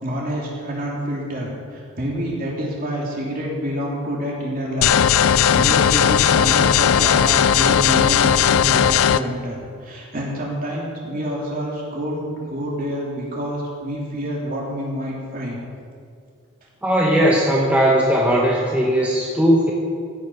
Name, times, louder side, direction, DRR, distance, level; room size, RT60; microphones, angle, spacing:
voice 1, 0.0-5.0 5.2-15.6, equal, 40° right, -3 dB, 3.1 m, -27 dB
sound 1, 4.8-9.2, left 8 dB, 70° left, 0.4 m, -16 dB
voice 2, 16.8-19.7, equal, 5° right, -4 dB, 1.1 m, -18 dB
15.5 x 9.2 x 5.7 m, 2.2 s
head